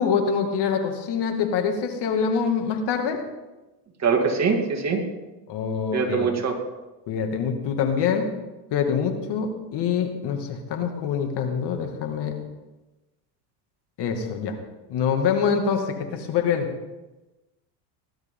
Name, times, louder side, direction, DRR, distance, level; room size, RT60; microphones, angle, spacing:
voice 1, 0.0-3.2 5.5-6.3 7.1-8.3 8.7-12.4 14.0-14.6 14.9-16.7, left 6 dB, 55° left, 4 dB, 2.4 m, -25 dB
voice 2, 4.0-5.0 5.9-6.6, right 5 dB, 30° right, 3 dB, 2.5 m, -23 dB
19.0 x 12.0 x 3.8 m, 1.1 s
supercardioid pair, 95°, 49 cm